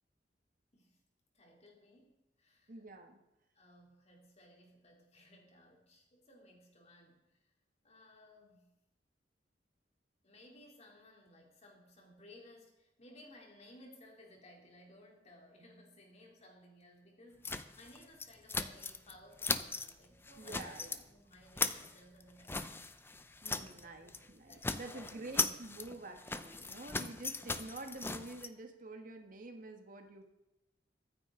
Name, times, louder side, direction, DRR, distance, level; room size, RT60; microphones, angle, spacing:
voice 1, 1.3-2.7 3.5-7.5 7.8-8.7 10.2-20.8 21.0-22.7 23.6-25.1, left 1 dB, 40° left, 0 dB, 3.1 m, -59 dB
voice 2, 2.7-3.2 20.4-21.0 23.4-30.2, right 2 dB, 50° right, 5 dB, 1.5 m, -48 dB
sound 1, 17.4-19.1 19.4-19.9 20.3-21.0 21.3-23.8 24.1-24.3 24.5-28.5, left 3 dB, 15° left, 0.6 m, -38 dB
24.0 x 9.3 x 3.8 m, 0.97 s
head